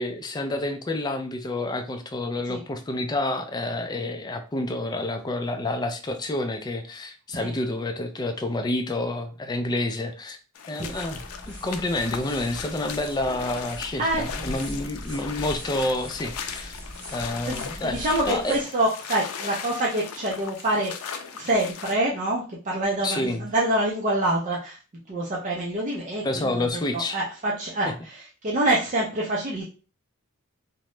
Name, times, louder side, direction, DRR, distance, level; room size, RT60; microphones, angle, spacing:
voice 1, 0.0-10.4 10.7-11.2 11.5-16.8 17.1-18.6 23.0-23.5 26.2-27.2 27.9-28.0, left 2 dB, 20° left, 6 dB, 0.3 m, -29 dB
sound 1, 10.6-22.0, left 7 dB, 90° left, 0.4 m, -38 dB
sound 2, 10.8-18.6, equal, 5° left, 1.5 m, -40 dB
voice 2, 14.0-14.6 17.5-20.9 21.3-24.8 25.1-26.6 26.9-29.6, right 1 dB, 35° right, -3 dB, 0.5 m, -26 dB
2.8 x 2.1 x 3.1 m, 0.34 s
head